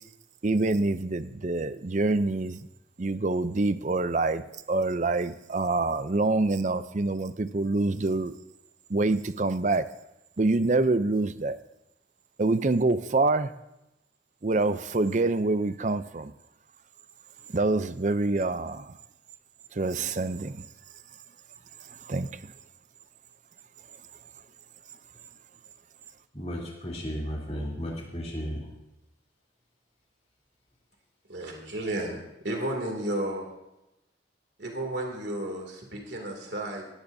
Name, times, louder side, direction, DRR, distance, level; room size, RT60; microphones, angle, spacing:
voice 1, 0.4-2.7 3.0-8.4 8.9-9.9 10.4-11.6 12.4-13.5 14.4-16.3 17.5-18.9 19.7-20.6 22.0-22.5, right 2 dB, 40° right, 13 dB, 0.5 m, -26 dB
voice 2, 26.3-28.7, equal, 35° left, -3 dB, 3.2 m, -34 dB
voice 3, 31.3-32.2 32.4-33.5 34.6-36.8, right 1 dB, 65° right, 1 dB, 2.6 m, -32 dB
17.5 x 17.0 x 2.7 m, 0.90 s
head